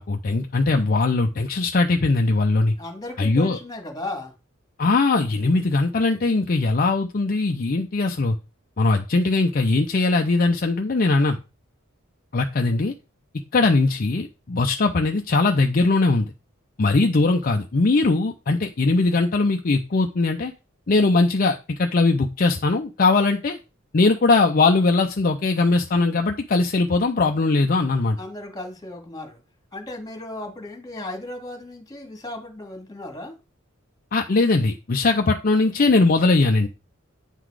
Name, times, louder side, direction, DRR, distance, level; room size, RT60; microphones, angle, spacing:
voice 1, 0.0-2.7 3.2-3.6 4.8-8.4 8.8-11.4 12.3-12.9 13.5-16.3 16.8-20.5 20.9-23.6 23.9-28.2 34.1-36.7, left 3 dB, 45° left, 0.6 m, -20 dB
voice 2, 2.8-4.3 28.2-29.4 29.7-33.4, left 2 dB, 20° left, 1.8 m, -35 dB
9.0 x 4.0 x 4.7 m
head